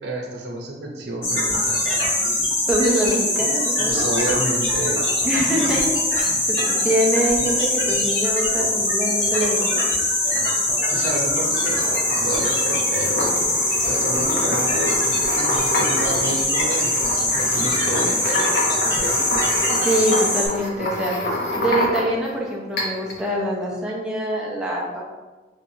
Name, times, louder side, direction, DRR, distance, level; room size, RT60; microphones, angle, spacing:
voice 1, 0.0-1.8 3.8-5.0 10.2-13.3 13.8-18.5 18.8-19.3, right 1 dB, 70° right, 0 dB, 0.7 m, -30 dB
sound 1, 1.2-20.5, left 1 dB, 80° left, 1.4 m, -22 dB
voice 2, 2.7-4.1 5.2-5.8 6.1-9.9 19.8-21.1 21.5-25.0, right 1 dB, 5° right, -5 dB, 0.6 m, -24 dB
sound 2, 11.3-22.3 22.8-23.2, left 1 dB, 60° left, 0.9 m, -28 dB
5.1 x 3.0 x 2.7 m, 1.2 s
head